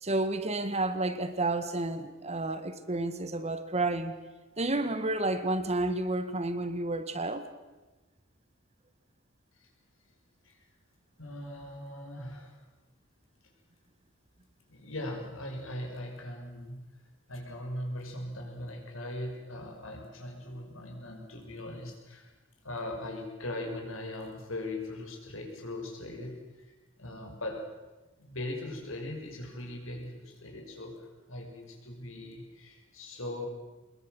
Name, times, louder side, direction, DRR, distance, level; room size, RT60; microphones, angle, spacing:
voice 1, 0.0-4.1 4.6-7.5, right 2 dB, 30° right, 10 dB, 1.6 m, -30 dB
voice 2, 11.2-12.6 14.7-16.8 17.3-22.3 22.6-26.7 27.0-27.7 28.2-33.5, left 1 dB, 75° left, 2 dB, 5.9 m, -40 dB
24.0 x 21.5 x 7.8 m, 1.2 s
head